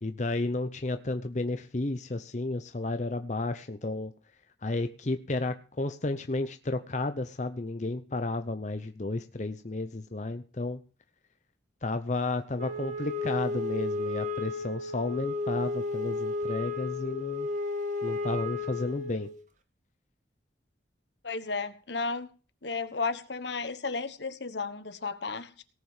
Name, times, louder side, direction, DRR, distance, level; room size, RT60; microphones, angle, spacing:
voice 1, 0.0-4.1 4.6-10.8 11.8-17.5 18.0-19.3, left 2 dB, 40° left, 9 dB, 0.7 m, -32 dB
Wind instrument woodwind instrument, 12.6-19.4, left 3 dB, 40° right, 1.5 m, -33 dB
voice 2, 21.2-22.3 22.6-25.6, left 4 dB, 70° left, 11 dB, 1.3 m, -33 dB
18.0 x 6.2 x 7.3 m, 0.37 s
head